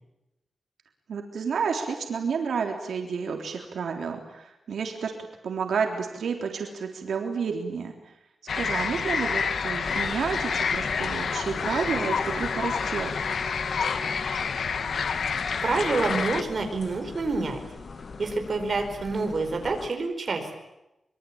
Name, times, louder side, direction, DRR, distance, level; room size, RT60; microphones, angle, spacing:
voice 1, 1.1-5.1 5.4-7.9 8.6-13.1, right 6 dB, 90° right, 3 dB, 3.5 m, -30 dB
sound 1, 8.5-16.4, left 6 dB, 70° left, 1.7 m, -28 dB
sound 2, 9.8-19.9, left 4 dB, 50° left, 2.4 m, -41 dB
Bowed string instrument, 10.2-14.7, equal, 10° right, 4.9 m, -46 dB
voice 2, 15.6-17.6 18.2-20.6, right 3 dB, 45° right, 5 dB, 4.8 m, -27 dB
25.0 x 23.5 x 8.8 m, 0.92 s
wide cardioid pair, 140°, 0 cm